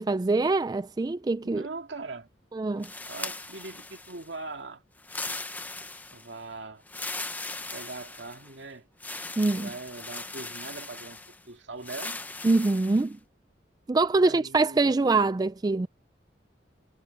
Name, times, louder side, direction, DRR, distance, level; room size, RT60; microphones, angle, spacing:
voice 1, 0.0-1.6 2.5-2.9 9.4-9.7 12.4-13.2 13.9-15.9, right 3 dB, 20° right, 0.3 m, -24 dB
voice 2, 1.4-2.3 3.0-4.8 6.1-6.8 7.7-8.9 9.5-12.2 14.2-14.9, right 3 dB, 75° right, 2.1 m, -41 dB
sound 1, 2.8-4.3 5.0-6.3 6.9-8.5 9.0-11.4 11.8-13.1, left 3 dB, 10° left, 0.9 m, -39 dB
head